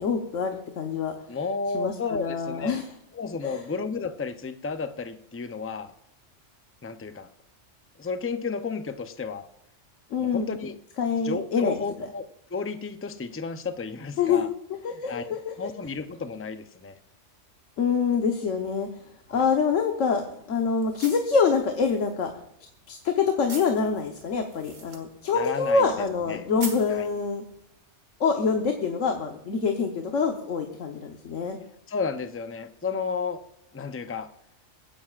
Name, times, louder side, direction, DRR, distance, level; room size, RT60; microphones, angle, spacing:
voice 1, 0.0-1.1 1.7-2.9 3.4-3.6 10.1-10.5 11.0-11.8 14.2-14.5 14.8-15.7 17.8-18.9 19.3-20.2 20.5-22.3 22.9-27.4 28.2-31.6, left 5 dB, 90° left, 3 dB, 1.4 m, -25 dB
voice 2, 1.3-2.8 3.1-5.9 6.8-7.3 8.0-9.5 10.2-10.7 11.2-12.2 12.5-14.5 15.1-16.9 19.3-19.4 25.3-25.9 26.3-26.4 26.9-27.1 31.9-33.4 33.7-34.3, left 5 dB, 20° left, 9 dB, 0.3 m, -32 dB
sound 1, 19.2-27.8, right 4 dB, 85° right, 2.1 m, -46 dB
23.5 x 10.0 x 2.4 m, 0.77 s
omnidirectional pair, 1.3 m